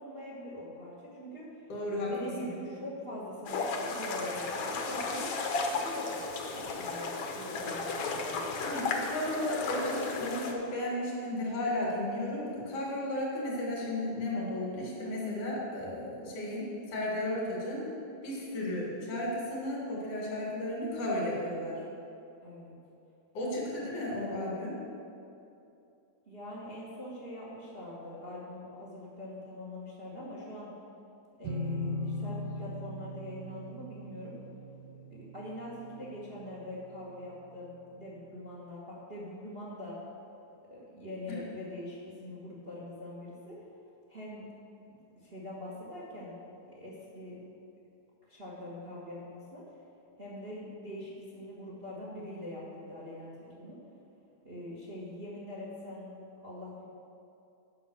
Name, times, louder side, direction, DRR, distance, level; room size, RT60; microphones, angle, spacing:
voice 1, 0.0-1.6 2.1-5.3 5.7-8.7 22.4-22.7 26.3-30.7 31.4-34.4 35.1-40.0 40.7-43.6 44.1-44.5 44.9-45.0 45.2-47.4 48.3-49.6 50.2-53.8 54.4-56.1 56.4-56.8, left 1 dB, 35° right, -5 dB, 0.9 m, -43 dB
voice 2, 1.7-2.1 2.4-2.5 8.6-17.9 18.2-21.8 23.3-24.8 41.3-41.4, left 1 dB, 85° left, -5 dB, 3.8 m, -34 dB
sound 1, 3.5-10.5, left 3 dB, 65° left, 1.7 m, -34 dB
sound 2, 31.4-37.0, left 1 dB, 65° right, 1.4 m, -39 dB
10.0 x 5.8 x 7.1 m, 2.7 s
omnidirectional pair, 3.5 m